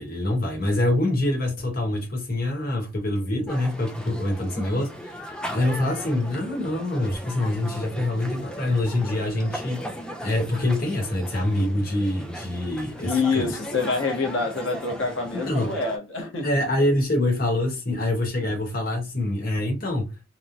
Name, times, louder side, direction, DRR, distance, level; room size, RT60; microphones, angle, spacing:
voice 1, 0.0-9.8 10.2-13.5 15.3-15.7 16.4-20.1, left 1 dB, 50° left, 1.0 m, -25 dB
sound 1, 3.5-16.0, equal, 5° left, 0.3 m, -37 dB
voice 2, 13.0-16.5 18.4-18.5, left 4 dB, 85° left, 0.9 m, -26 dB
3.0 x 2.1 x 2.5 m
head